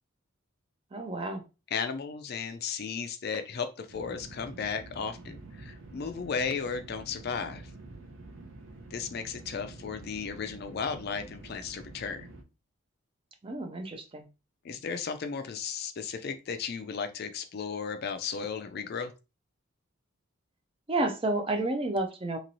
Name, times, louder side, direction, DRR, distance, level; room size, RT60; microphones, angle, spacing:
voice 1, 0.9-1.4 13.4-14.3 20.9-22.4, right 2 dB, 25° right, 6 dB, 0.4 m, -30 dB
voice 2, 1.7-7.6 8.9-12.3 14.6-19.1, left 6 dB, 45° left, 9 dB, 0.4 m, -35 dB
sound 1, 3.9-12.4, right 2 dB, 65° right, 0.6 m, -48 dB
3.0 x 2.9 x 2.6 m, 0.30 s
head